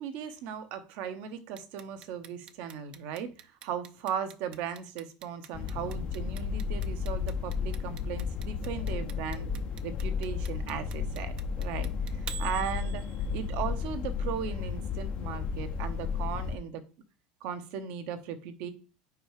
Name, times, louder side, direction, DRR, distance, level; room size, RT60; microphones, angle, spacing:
voice 1, 0.0-9.5 9.8-13.0 13.3-16.8 17.4-18.7, right 8 dB, 65° right, 9 dB, 1.0 m, -37 dB
Clock, 1.6-13.5, right 9 dB, 40° right, 0.5 m, -46 dB
sound 1, 5.5-16.6, left 6 dB, 40° left, 0.5 m, -33 dB
4.8 x 4.6 x 4.9 m, 0.35 s
supercardioid pair, 135°, 3 cm